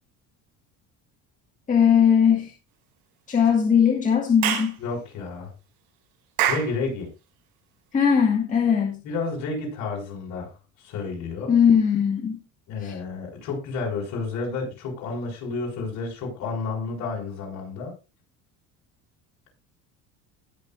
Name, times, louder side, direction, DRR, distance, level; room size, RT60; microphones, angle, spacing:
voice 1, 1.7-2.5 3.3-4.7 7.9-9.0 11.5-12.4 12.8-12.9, left 7 dB, 20° left, 0 dB, 1.9 m, -19 dB
Clapping / Chirp tweet, 4.4-4.7 6.4-6.7, right 10 dB, 75° right, 6.6 m, -24 dB
voice 2, 4.8-5.5 6.5-7.1 9.0-10.5 10.8-11.5 12.7-17.9, left 4 dB, 55° left, 0 dB, 6.3 m, -31 dB
19.5 x 6.6 x 2.5 m, 0.29 s
cardioid pair, 165°, 35 cm